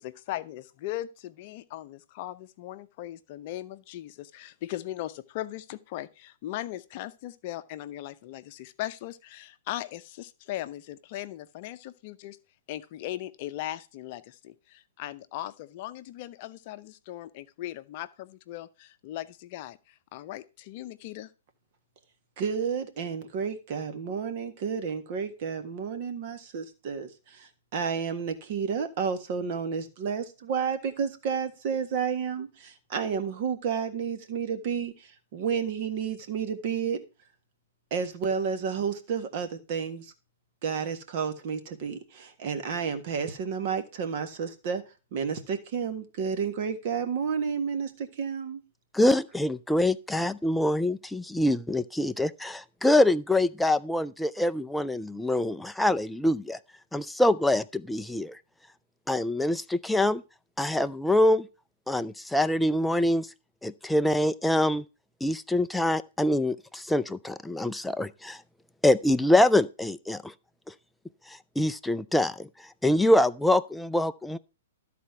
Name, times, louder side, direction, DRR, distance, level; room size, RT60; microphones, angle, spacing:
voice 1, 0.0-12.4 12.7-21.3, left 14 dB, 45° left, 0.7 m, -38 dB
voice 2, 22.4-37.0 37.9-40.1 40.6-44.8 45.1-48.6, right 6 dB, 45° right, 1.6 m, -31 dB
voice 3, 48.9-56.6 56.9-58.4 59.1-60.2 60.6-61.5 61.9-63.3 63.6-64.8 65.2-68.4 68.8-70.3 71.3-72.5 72.8-74.4, left 1 dB, 5° left, 0.4 m, -25 dB
12.5 x 4.2 x 5.8 m
figure-of-eight pair, 115°, 0 cm